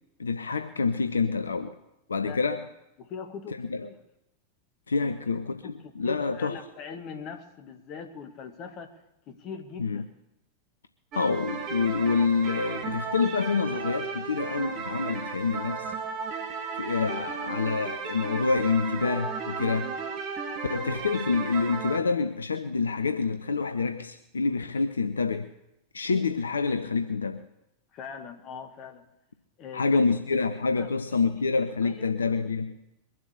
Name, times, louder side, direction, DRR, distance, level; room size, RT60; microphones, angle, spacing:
voice 1, 0.2-1.7 2.1-2.6 3.6-3.9 4.9-6.6 9.8-10.0 11.1-15.9 16.7-19.9 20.7-25.5 25.9-27.4 29.7-32.8, left 4 dB, 75° left, 9 dB, 0.7 m, -27 dB
voice 2, 2.2-2.6 3.0-4.0 5.0-5.1 5.6-9.0 9.3-10.0 20.9-21.1 27.9-29.1 29.6-30.0 30.8-30.9 31.8-32.1, left 6 dB, 40° left, 6 dB, 2.0 m, -41 dB
sound 1, 11.1-22.0, right 5 dB, 35° right, 1.7 m, -35 dB
22.5 x 7.7 x 6.8 m, 0.87 s
figure-of-eight pair, 90°, 0 cm